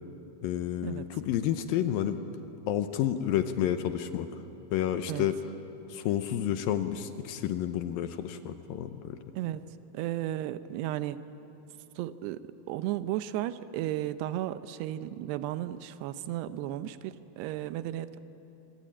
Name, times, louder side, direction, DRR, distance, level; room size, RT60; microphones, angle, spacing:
voice 1, 0.4-2.2 2.7-4.3 4.7-5.4 5.9-9.2, left 11 dB, 75° left, 9 dB, 2.3 m, -30 dB
voice 2, 9.9-11.2 12.0-18.2, right 13 dB, 90° right, 12 dB, 2.8 m, -34 dB
25.5 x 22.5 x 8.8 m, 3.0 s
omnidirectional pair, 4.6 m